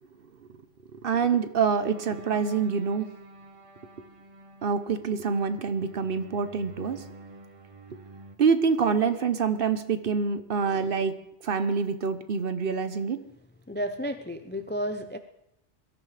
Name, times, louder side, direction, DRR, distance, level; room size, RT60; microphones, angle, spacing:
voice 1, 0.9-3.1 4.6-7.1 7.9-8.0 8.4-11.2 11.4-13.3, right 5 dB, 55° right, 0.9 m, -26 dB
sound 1, 1.8-8.4, right 2 dB, 30° right, 0.8 m, -49 dB
voice 2, 13.7-15.2, equal, 15° left, 0.3 m, -32 dB
22.0 x 13.5 x 3.3 m
omnidirectional pair, 1.2 m